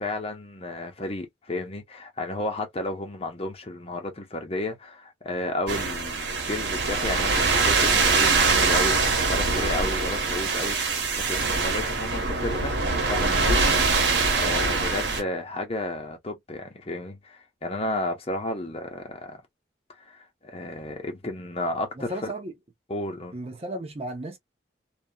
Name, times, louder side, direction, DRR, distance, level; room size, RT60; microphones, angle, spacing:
voice 1, 0.0-12.7 13.1-13.8 14.4-19.4 20.1-22.3 22.9-23.3, left 1 dB, 35° left, 0.8 m, -32 dB
sound 1, 5.7-15.2, right 4 dB, 75° right, 1.0 m, -23 dB
voice 2, 22.0-22.5 23.3-24.4, right 1 dB, 35° right, 0.6 m, -34 dB
2.8 x 2.4 x 2.2 m
head